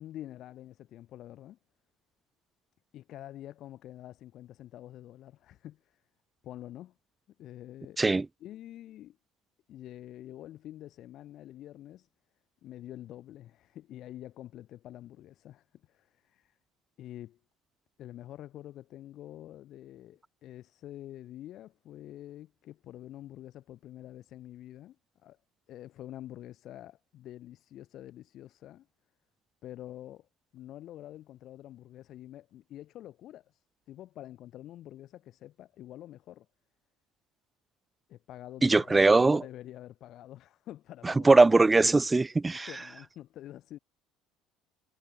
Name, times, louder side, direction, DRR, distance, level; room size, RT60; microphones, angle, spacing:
voice 1, 0.0-1.6 2.9-6.0 6.4-6.9 7.4-8.0 8.4-9.2 9.7-12.1 12.6-16.6 17.0-17.4 18.0-25.0 25.2-25.4 25.7-28.9 29.6-30.3 30.5-36.5 38.1-41.5 42.5-43.8, left 13 dB, 50° left, 3.6 m, -47 dB
voice 2, 38.6-39.4 41.0-42.7, right 3 dB, 10° right, 0.3 m, -21 dB
cardioid pair, 150°, 0 cm